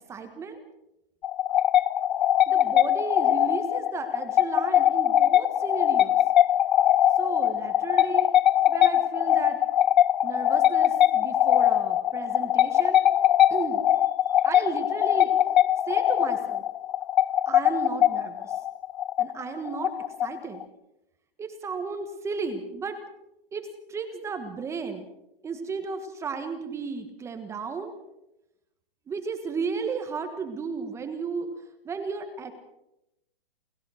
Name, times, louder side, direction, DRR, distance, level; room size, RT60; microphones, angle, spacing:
voice 1, 0.1-0.6 2.5-6.2 7.2-8.4 8.7-9.6 10.2-13.0 13.5-13.8 14.4-15.3 15.9-16.6 17.5-18.6 19.2-19.9 20.2-20.6 21.4-23.0 23.5-25.1 25.4-27.9 29.1-31.5 31.8-32.5, right 5 dB, 10° right, 6 dB, 1.4 m, -34 dB
sound 1, 1.2-20.6, left 12 dB, 50° left, 0.8 m, -22 dB
29.0 x 14.5 x 6.4 m, 0.89 s
hypercardioid pair, 160°, 29 cm